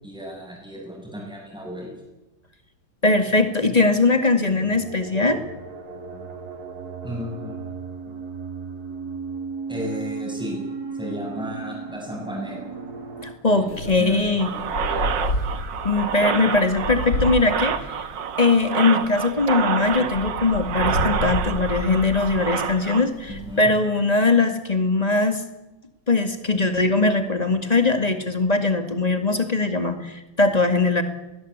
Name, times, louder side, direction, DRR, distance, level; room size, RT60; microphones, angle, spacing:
voice 1, 0.0-1.9 7.0-7.6 8.1-8.2 9.7-10.6 11.0-12.6 13.4-15.2 23.3-23.7, equal, ahead, -2 dB, 7.6 m, -34 dB
voice 2, 3.0-5.4 13.4-14.5 15.8-18.0 18.4-25.4 26.1-31.0, left 3 dB, 20° left, 7 dB, 2.2 m, -21 dB
sound 1, 4.0-13.3, right 5 dB, 55° right, 3.7 m, -35 dB
Wind, 13.7-23.6, left 1 dB, 65° left, 3.5 m, -31 dB
sound 2, 14.4-23.1, right 8 dB, 70° right, 1.9 m, -28 dB
21.0 x 20.0 x 8.2 m, 1.0 s
omnidirectional pair, 2.0 m